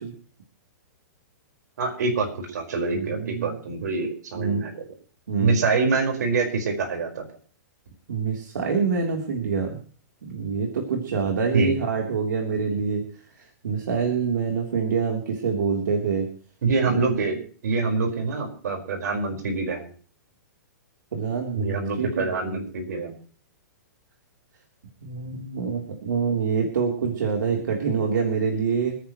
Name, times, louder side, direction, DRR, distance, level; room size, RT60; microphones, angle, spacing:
voice 1, 1.8-4.8 5.4-7.2 11.5-11.7 16.6-17.4 17.6-19.9 21.5-23.1, right 4 dB, 70° right, 2 dB, 5.0 m, -25 dB
voice 2, 2.9-3.6 4.3-4.6 5.3-5.6 8.1-9.8 10.3-13.0 13.6-16.3 16.9-17.2 21.1-22.6 25.0-29.0, right 5 dB, 85° right, 0 dB, 3.5 m, -26 dB
27.0 x 10.5 x 3.1 m, 0.42 s
hypercardioid pair, 175°, 10 cm